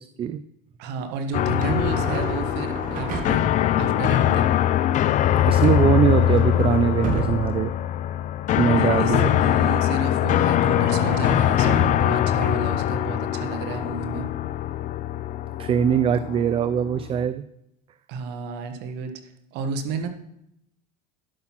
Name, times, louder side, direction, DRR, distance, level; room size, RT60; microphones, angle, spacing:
voice 1, 0.8-4.5 8.7-14.3 18.1-19.1 19.5-20.1, right 4 dB, 70° right, 7 dB, 1.3 m, -32 dB
sound 1, 1.3-17.3, left 12 dB, 45° left, 0.5 m, -22 dB
sound 2, 1.5-3.6 5.6-7.7 10.6-12.1 12.4-12.6, right 3 dB, 50° right, 2.3 m, -33 dB
voice 2, 5.5-7.7 8.6-9.3 15.6-17.4, right 8 dB, 30° right, 14 dB, 0.4 m, -22 dB
11.5 x 6.1 x 5.9 m, 0.81 s
supercardioid pair, 110°, 18 cm